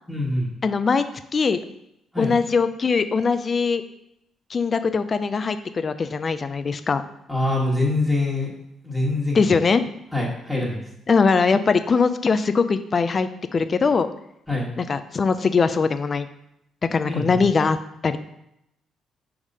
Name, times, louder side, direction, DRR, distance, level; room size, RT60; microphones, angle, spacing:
voice 1, 0.1-0.5 2.1-2.3 7.3-8.5 8.8-9.4 10.1-10.8 14.5-14.7 17.1-17.4, left 2 dB, 5° left, -5 dB, 1.6 m, -24 dB
voice 2, 0.6-1.0 1.3-1.6 2.2-3.8 4.5-7.0 9.3-9.8 11.1-14.1 14.8-16.3 16.9-17.8 18.0-18.2, left 5 dB, 40° left, 11 dB, 0.4 m, -21 dB
4.8 x 3.6 x 5.4 m, 0.81 s
cardioid pair, 90°, 0 cm